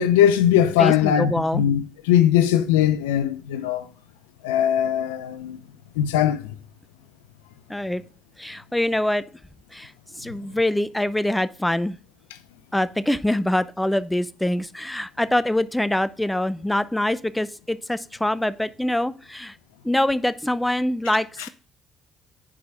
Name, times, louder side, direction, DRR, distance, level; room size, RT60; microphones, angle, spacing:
voice 1, 0.0-3.9 4.4-5.6 6.0-6.5, left 10 dB, 90° left, 0.5 m, -20 dB
voice 2, 0.8-1.7 7.7-8.0 8.4-9.2 9.7-12.0 12.7-19.6 19.8-21.5, left 1 dB, 10° left, 0.6 m, -24 dB
9.9 x 4.8 x 3.6 m
hypercardioid pair, 55°, 0 cm